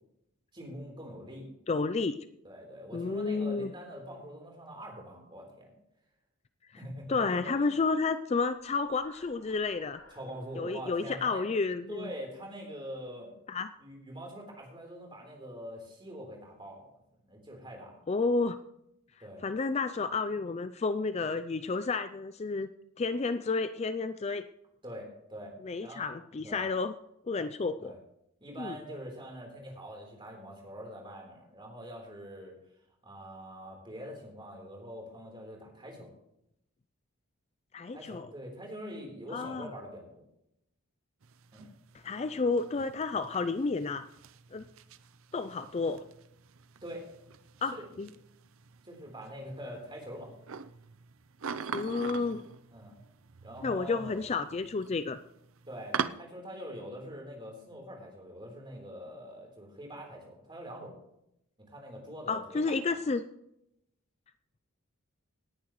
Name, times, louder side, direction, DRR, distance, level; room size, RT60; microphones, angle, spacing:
voice 1, 0.5-1.5 2.4-5.7 6.8-7.5 10.1-11.5 11.9-13.3 13.8-16.9 17.3-18.0 19.2-19.5 24.8-25.6 25.8-26.1 26.4-26.6 27.8-28.0 28.4-32.6 33.0-36.1 37.9-40.2 41.5-41.7 46.8-47.1 47.7-47.8 48.8-50.3 52.7-53.0 53.4-54.2 55.7-61.0 61.6-62.6 62.9-63.0, equal, 20° right, 0 dB, 3.7 m, -44 dB
voice 2, 1.7-2.2 2.9-3.7 7.1-10.0 10.6-12.1 13.5-13.7 18.1-18.6 19.4-22.7 23.0-24.4 25.6-26.9 27.3-27.9 28.6-28.8 37.7-38.3 39.3-39.7 42.0-44.0 44.5-44.6 45.3-46.1 47.6-48.1 51.7-52.4 53.6-55.2 62.3-63.2, left 4 dB, 30° left, 11 dB, 0.4 m, -31 dB
sound 1, 8.4-12.6, left 2 dB, 70° left, 4.0 m, -60 dB
sound 2, 41.2-56.1, right 6 dB, 65° right, 0.6 m, -43 dB
18.0 x 10.5 x 3.1 m, 0.79 s
head